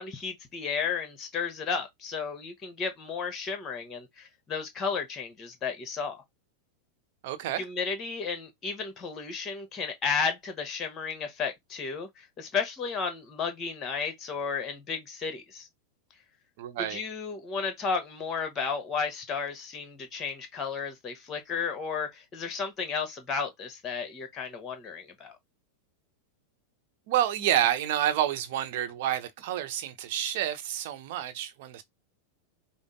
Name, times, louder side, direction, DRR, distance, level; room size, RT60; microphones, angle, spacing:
voice 1, 0.0-6.2 7.6-15.7 16.8-25.4, left 5 dB, 25° left, 1.2 m, -33 dB
voice 2, 7.2-7.6 16.6-17.0 27.1-31.8, right 11 dB, 50° right, 0.9 m, -29 dB
5.2 x 2.1 x 3.7 m
figure-of-eight pair, 90°, 0 cm